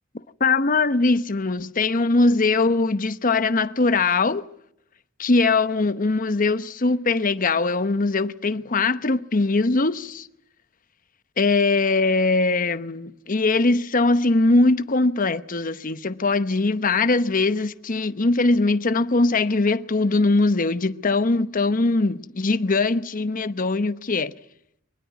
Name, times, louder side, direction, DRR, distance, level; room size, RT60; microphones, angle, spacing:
voice 1, 0.4-4.4 5.2-10.3 11.4-24.3, left 3 dB, 45° left, 0.9 m, -21 dB
24.0 x 23.0 x 8.2 m
head